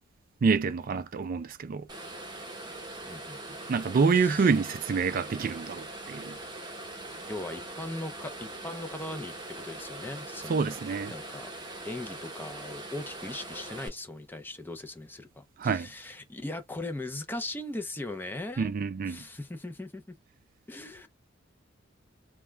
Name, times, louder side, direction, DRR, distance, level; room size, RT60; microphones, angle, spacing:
voice 1, 0.4-1.9 3.7-6.4 10.5-11.1 15.6-15.9 18.6-19.2, right 5 dB, 45° right, 0.3 m, -27 dB
sound 1, 1.9-13.9, right 2 dB, 20° right, 0.8 m, -42 dB
voice 2, 3.1-3.6 4.1-4.6 7.3-10.8 11.1-11.5 11.8-18.8 19.1-20.0 20.7-21.1, left 2 dB, 10° left, 0.5 m, -39 dB
2.2 x 2.2 x 3.2 m
head